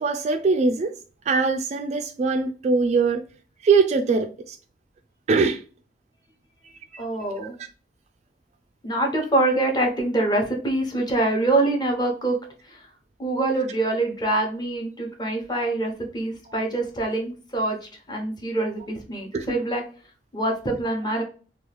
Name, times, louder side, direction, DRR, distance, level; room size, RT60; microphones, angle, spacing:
voice 1, 0.0-0.9 1.3-3.2 3.6-4.6 5.3-5.6 6.9-7.0 16.5-16.6 19.3-19.5, right 4 dB, 40° right, 0.3 m, -22 dB
voice 2, 7.0-7.5 8.8-12.4 12.7-12.8 13.2-17.8 18.1-19.8 20.3-21.2, right 2 dB, 25° left, 0.9 m, -25 dB
3.0 x 2.3 x 3.3 m
head